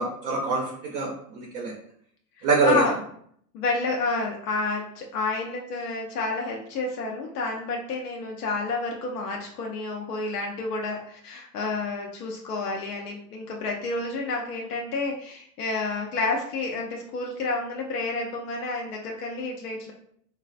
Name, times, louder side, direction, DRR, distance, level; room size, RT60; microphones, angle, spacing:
voice 1, 0.0-1.7 2.4-2.8, right 3 dB, 30° right, -1 dB, 0.5 m, -24 dB
voice 2, 2.4-3.0 3.5-19.9, left 3 dB, 70° left, 0 dB, 0.6 m, -30 dB
3.0 x 2.3 x 2.4 m, 0.67 s
hypercardioid pair, 95°, 48 cm